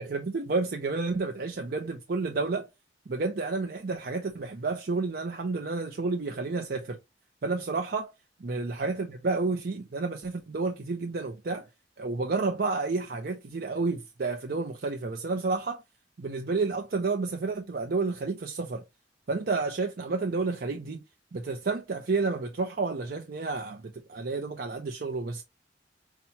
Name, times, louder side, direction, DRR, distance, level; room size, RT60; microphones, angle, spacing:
voice 1, 0.0-2.7 3.1-7.0 7.4-8.1 8.4-11.7 12.0-15.8 16.2-18.8 19.3-21.0 21.3-23.8 24.1-25.4, right 3 dB, 55° right, 0.5 m, -30 dB
5.7 x 2.2 x 2.8 m
head